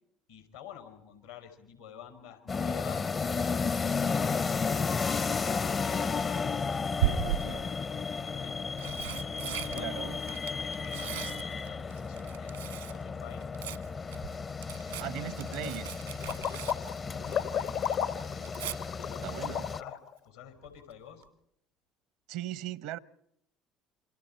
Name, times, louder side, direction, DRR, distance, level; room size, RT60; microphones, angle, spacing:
voice 1, 0.3-3.6 5.4-8.7 9.2-13.5 14.6-15.8 17.0-18.6 18.8-20.0 20.2-21.2, left 9 dB, 85° left, 7 dB, 5.5 m, -50 dB
sound 1, 2.5-19.8, left 5 dB, 35° left, 0.8 m, -33 dB
Tearing, 5.5-5.9 7.0-7.7 8.5-13.0 13.3-17.6 17.9-18.8 20.6-20.9 21.2-21.3, right 11 dB, 85° right, 1.6 m, -37 dB
voice 2, 9.7-10.2 15.0-15.9 19.2-19.7 22.3-23.0, right 13 dB, 70° right, 19 dB, 0.8 m, -38 dB
sound 2, 16.2-20.1, left 8 dB, 65° left, 1.2 m, -33 dB
29.0 x 25.5 x 4.5 m, 0.76 s
hypercardioid pair, 65°, 0 cm